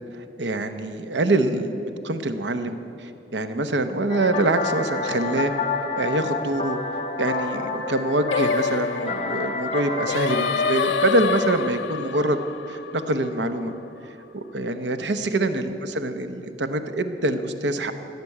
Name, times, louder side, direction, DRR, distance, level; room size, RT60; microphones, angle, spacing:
voice 1, 0.1-1.7 2.0-5.5 6.0-6.8 7.2-12.4 12.7-13.7 14.0-17.9, right 2 dB, 80° right, 9 dB, 0.8 m, -25 dB
sound 1, 4.1-11.6, left 3 dB, 35° left, 1.3 m, -29 dB
Singing, 8.3-13.6, left 6 dB, 90° left, 0.4 m, -27 dB
15.0 x 6.8 x 9.7 m, 2.7 s
head